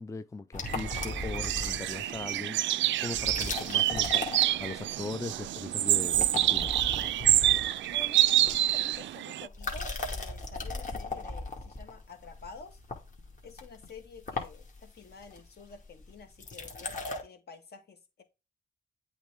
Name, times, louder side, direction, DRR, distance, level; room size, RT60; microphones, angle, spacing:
voice 1, 0.0-6.8, left 3 dB, 15° left, 0.5 m, -40 dB
sound 1, 0.5-2.3 3.1-5.0 5.3-5.7 6.0-9.0 9.5-17.2, left 3 dB, 45° left, 2.3 m, -38 dB
sound 2, 0.7-9.5, right 14 dB, 75° right, 0.4 m, -27 dB
voice 2, 7.9-12.8 13.4-18.2, left 4 dB, 60° left, 1.9 m, -49 dB
8.1 x 3.6 x 3.5 m
cardioid pair, 65°, 19 cm